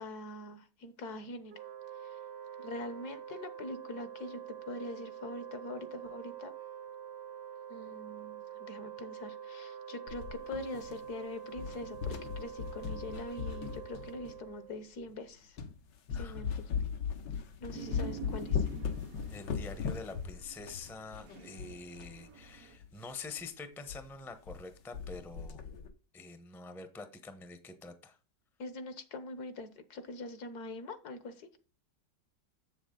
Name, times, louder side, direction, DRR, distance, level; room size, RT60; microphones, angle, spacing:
voice 1, 0.0-1.5 2.0-2.2 2.6-6.5 7.7-15.6 16.2-16.6 17.6-18.7 28.6-31.5, left 2 dB, 70° left, 11 dB, 1.5 m, -43 dB
Wind instrument woodwind instrument, 1.5-14.9, right 9 dB, 90° right, 0.5 m, -46 dB
sound 1, 10.1-11.2 11.5-14.5 15.1-15.2 15.6-15.8 16.1-22.2 22.4-22.5 22.8-22.9 23.3-23.5 23.9-24.0 24.3-24.6 24.9-25.9, left 7 dB, 85° left, 1.7 m, -38 dB
sound 2, 17.7-22.8, right 8 dB, 60° right, 1.2 m, -49 dB
voice 2, 19.3-25.6 26.1-28.2, left 4 dB, ahead, 9 dB, 0.7 m, -46 dB
7.6 x 7.1 x 3.8 m, 0.33 s
omnidirectional pair, 1.8 m